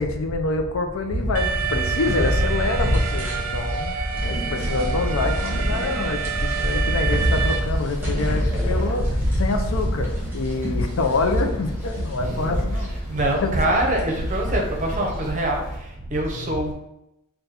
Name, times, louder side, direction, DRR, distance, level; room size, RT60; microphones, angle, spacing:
voice 1, 0.0-3.9 4.2-10.1 10.3-12.9 13.4-13.6 16.3-16.6, left 3 dB, 70° left, 5 dB, 0.5 m, -26 dB
sound 1, 1.1-15.3, equal, 10° right, 0.9 m, -26 dB
Alarm, 1.3-7.6, right 7 dB, 85° right, 0.5 m, -29 dB
sound 2, 7.3-15.7, equal, 15° left, 1.2 m, -36 dB
voice 2, 8.6-9.1 11.5-11.6 12.2-16.7, right 1 dB, 35° right, 1 dB, 0.6 m, -26 dB
3.9 x 2.2 x 4.1 m, 0.85 s
head